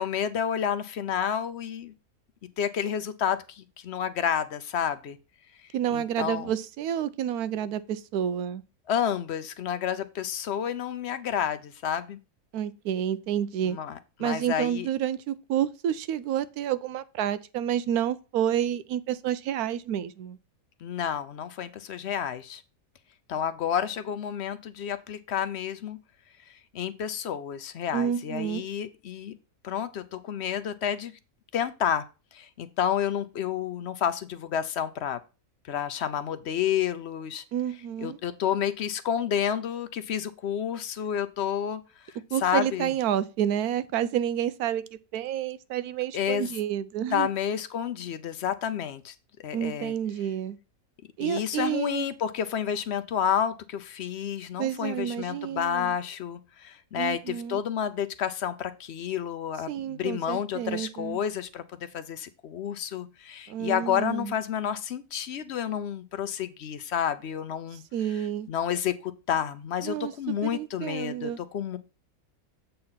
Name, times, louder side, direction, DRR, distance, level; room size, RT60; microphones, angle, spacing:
voice 1, 0.0-1.9 2.6-5.2 5.9-6.5 8.9-12.2 13.6-14.9 20.8-22.6 23.3-26.0 26.7-29.4 29.6-31.1 31.5-32.0 32.3-35.2 35.6-37.4 38.0-42.1 42.4-42.9 46.1-46.5 47.1-49.1 49.4-49.9 51.2-71.8, left 9 dB, 60° left, 0.7 m, -30 dB
voice 2, 5.7-8.6 12.5-13.8 14.2-20.4 27.9-28.6 37.5-38.2 42.3-44.8 45.1-47.3 49.5-50.6 51.2-52.1 54.6-55.9 57.0-57.6 59.7-61.2 63.5-64.3 67.9-68.5 69.8-70.1 70.4-71.4, right 10 dB, 85° right, 1.1 m, -29 dB
7.7 x 4.2 x 5.6 m
omnidirectional pair, 1.6 m